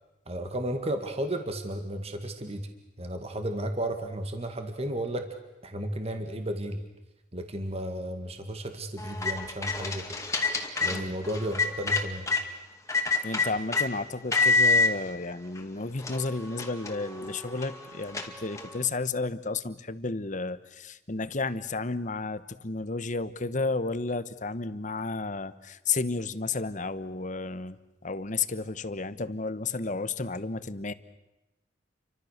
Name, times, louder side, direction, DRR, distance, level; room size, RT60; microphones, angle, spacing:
voice 1, 0.3-2.7 3.0-5.3 5.6-6.8 7.3-10.1 10.8-12.3, right 1 dB, 35° right, 6 dB, 2.1 m, -33 dB
sound 1, 9.0-12.4 12.9-13.9 14.3-14.9 15.6-15.7 16.0-18.8, left 3 dB, 15° left, 2.4 m, -28 dB
voice 2, 13.2-30.9, left 3 dB, 40° left, 13 dB, 1.1 m, -32 dB
30.0 x 25.0 x 6.7 m, 1.0 s
head